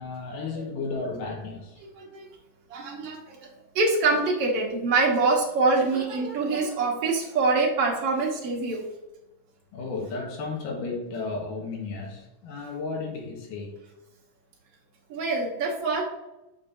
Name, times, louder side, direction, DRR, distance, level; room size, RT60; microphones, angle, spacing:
voice 1, 0.0-1.8 9.7-13.8, left 3 dB, 70° left, 0 dB, 3.1 m, -33 dB
voice 2, 2.7-3.5 3.8-8.8 15.1-16.0, right 3 dB, 55° right, -1 dB, 2.0 m, -25 dB
7.2 x 6.6 x 2.7 m, 0.93 s
omnidirectional pair, 3.8 m